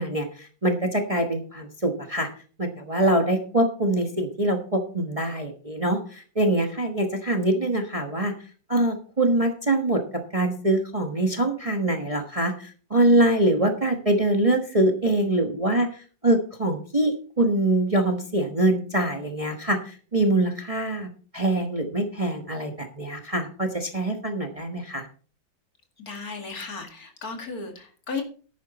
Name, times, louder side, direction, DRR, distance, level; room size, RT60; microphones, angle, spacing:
voice 1, 0.0-2.3 2.6-8.3 8.7-10.0 10.3-21.1 21.3-25.1, right 1 dB, 20° right, 4 dB, 1.1 m, -24 dB
voice 2, 26.0-28.2, left 4 dB, 50° left, 3 dB, 2.6 m, -35 dB
11.0 x 9.1 x 4.1 m, 0.40 s
omnidirectional pair, 2.0 m